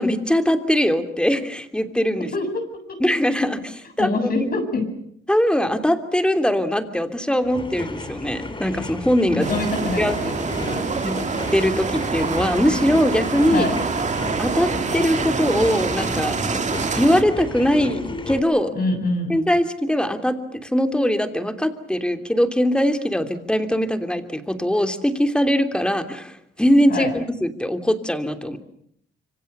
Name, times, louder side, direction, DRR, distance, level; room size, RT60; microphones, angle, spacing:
voice 1, 0.0-2.3 3.0-3.6 4.0-4.5 5.3-9.5 10.0-10.2 11.0-11.1 11.5-13.7 14.4-16.4 16.9-18.7 19.3-28.6, equal, 5° left, 8 dB, 3.1 m, -21 dB
voice 2, 4.0-4.9 9.3-10.9 13.5-13.8 18.7-19.4 26.9-27.1, left 2 dB, 50° left, 6 dB, 7.8 m, -25 dB
sound 1, 7.4-18.4, left 2 dB, 25° left, 3.5 m, -33 dB
sound 2, 9.4-17.2, right 5 dB, 35° right, 2.3 m, -26 dB
27.0 x 25.0 x 6.9 m, 0.69 s
cardioid pair, 90°, 20 cm